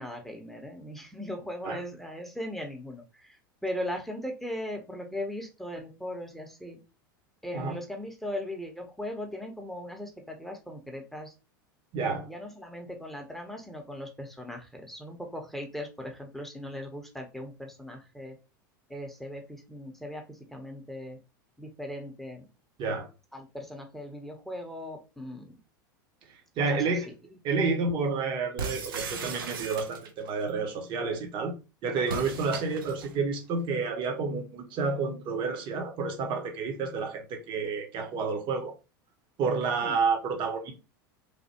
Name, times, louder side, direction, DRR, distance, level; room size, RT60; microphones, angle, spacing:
voice 1, 0.0-3.4 3.6-6.8 7.4-11.3 11.9-18.4 18.9-21.2 21.6-22.4 23.3-25.5 26.6-26.8 39.8-40.0, left 1 dB, ahead, 0.8 m, -38 dB
voice 2, 11.9-12.3 22.8-23.1 26.6-27.1 27.4-31.5 31.8-38.7 39.4-40.7, right 4 dB, 45° right, 0.9 m, -30 dB
sound 1, 28.6-30.3 32.0-33.2, right 5 dB, 80° right, 0.6 m, -37 dB
3.3 x 2.2 x 2.8 m
hypercardioid pair, 90°, 11 cm